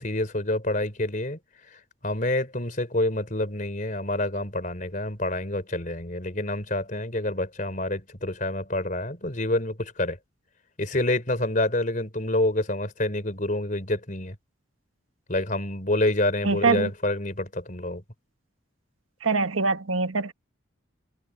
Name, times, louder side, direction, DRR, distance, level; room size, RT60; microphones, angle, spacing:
voice 1, 0.0-1.4 2.0-10.2 10.8-14.4 15.3-18.0, left 1 dB, 40° left, 4.1 m, -27 dB
voice 2, 16.4-16.9 19.2-20.3, right 4 dB, 90° right, 1.4 m, -23 dB
head